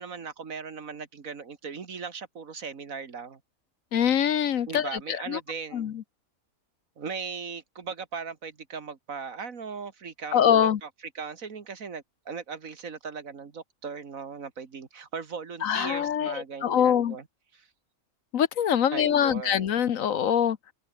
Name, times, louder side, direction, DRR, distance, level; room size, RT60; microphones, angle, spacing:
voice 1, 0.0-3.4 4.7-5.9 7.0-10.9 11.1-17.3 17.5-17.7 18.9-19.7, right 5 dB, 70° right, 2.2 m, -38 dB
voice 2, 3.9-5.4 5.7-5.9 10.3-10.8 15.6-16.3 16.6-17.2 18.3-20.6, left 9 dB, 70° left, 1.3 m, -24 dB
omnidirectional pair, 1.5 m